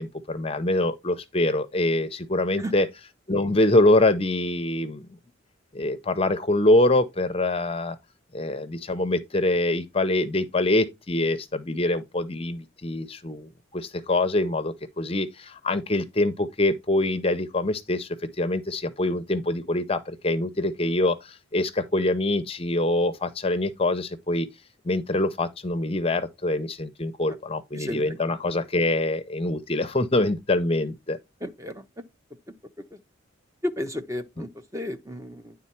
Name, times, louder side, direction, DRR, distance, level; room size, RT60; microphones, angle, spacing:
voice 1, 0.0-2.9 3.3-5.1 5.7-8.0 8.3-24.5 24.8-31.2 34.4-34.5, left 2 dB, 25° left, 0.6 m, -24 dB
voice 2, 27.7-28.2 31.4-31.8 33.6-35.5, left 1 dB, 15° right, 0.7 m, -33 dB
9.7 x 3.8 x 4.3 m
head